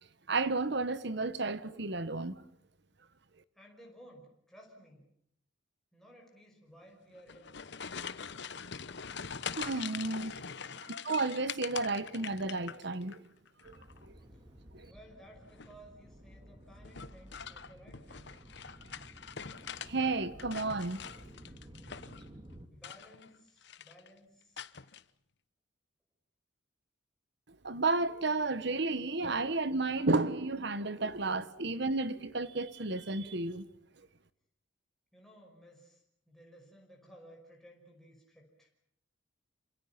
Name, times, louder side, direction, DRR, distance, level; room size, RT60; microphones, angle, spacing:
voice 1, 0.3-2.4 9.6-10.4 11.0-13.2 13.6-13.7 14.1-14.2 14.7-14.9 19.8-21.0 27.6-33.6, right 3 dB, 55° right, 1.3 m, -32 dB
voice 2, 3.5-5.1 5.9-7.5 10.6-10.9 14.3-14.4 14.9-18.4 22.7-24.6 35.1-38.7, equal, ahead, 5.6 m, -57 dB
sound 1, 7.1-13.2 13.5-14.0 15.4-15.8 16.8-19.9 20.2-22.3 22.7-23.3 23.6-24.1 24.6-25.0, left 7 dB, 60° left, 1.1 m, -43 dB
sound 2, 13.6-22.7, right 1 dB, 25° right, 2.6 m, -53 dB
28.5 x 26.5 x 5.8 m
head